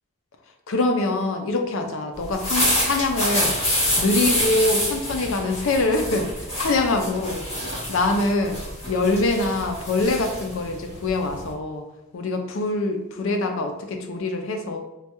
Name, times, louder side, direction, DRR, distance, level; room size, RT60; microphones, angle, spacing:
voice 1, 0.7-3.6 4.0-6.3 6.6-7.4 7.9-8.6 8.9-11.8 12.1-14.8, left 2 dB, 75° left, 4 dB, 0.5 m, -24 dB
sound 1, 2.2-11.5, equal, 30° left, 1.2 m, -27 dB
3.2 x 2.2 x 2.9 m, 0.94 s
head